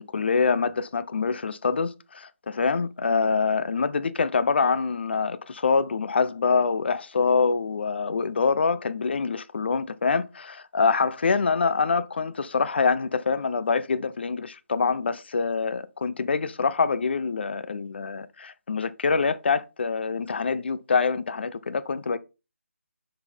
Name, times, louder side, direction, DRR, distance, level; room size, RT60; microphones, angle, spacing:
voice 1, 0.0-22.2, left 5 dB, 45° left, 0.5 m, -25 dB
6.6 x 4.0 x 4.3 m
figure-of-eight pair, 165°, 8 cm